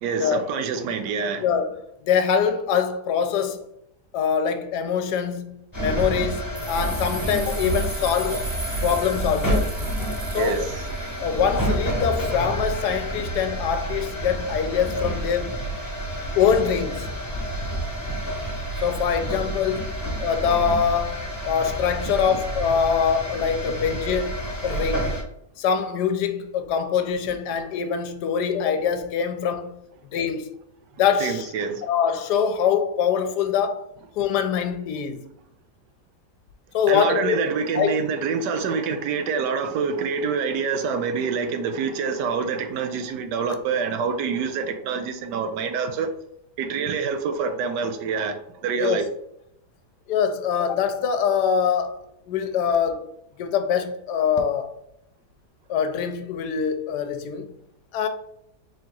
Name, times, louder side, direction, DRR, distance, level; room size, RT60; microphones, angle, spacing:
voice 1, 0.0-1.5 10.3-10.8 31.2-31.9 36.9-46.1 46.6-49.1, right 5 dB, 85° right, 1.2 m, -26 dB
voice 2, 1.4-3.6 4.1-8.5 8.8-9.7 10.3-10.7 11.2-15.6 16.4-17.1 18.8-19.8 20.2-25.1 25.6-29.8 30.1-30.5 31.0-31.5 31.8-33.8 34.2-35.3 36.7-37.4 37.7-38.0 48.8-49.0 50.1-52.0 52.3-53.1 53.4-54.7 55.7-57.5 57.9-58.1, left 7 dB, 80° left, 1.2 m, -24 dB
sound 1, 5.7-25.2, right 1 dB, 15° left, 0.8 m, -29 dB
sound 2, 6.5-11.3, right 3 dB, 60° right, 0.4 m, -38 dB
3.8 x 2.8 x 3.7 m
omnidirectional pair, 1.8 m